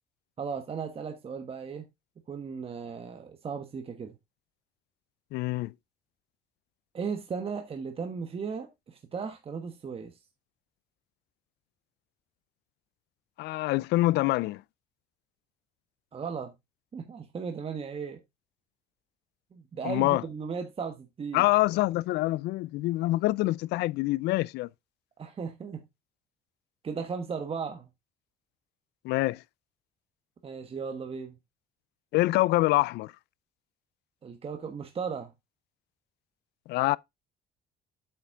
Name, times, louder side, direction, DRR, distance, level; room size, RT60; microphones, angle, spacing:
voice 1, 0.4-1.9 2.3-4.2 6.9-10.2 16.1-16.5 16.9-18.2 19.5-21.4 25.2-25.8 26.8-27.9 30.4-31.4 34.2-35.3, right 6 dB, 35° right, 1.3 m, -36 dB
voice 2, 5.3-5.7 13.4-14.6 19.8-20.2 21.3-24.7 29.0-29.4 32.1-33.1 36.7-37.0, left 18 dB, 80° left, 0.4 m, -25 dB
8.4 x 5.9 x 3.6 m
cardioid pair, 110°, 17 cm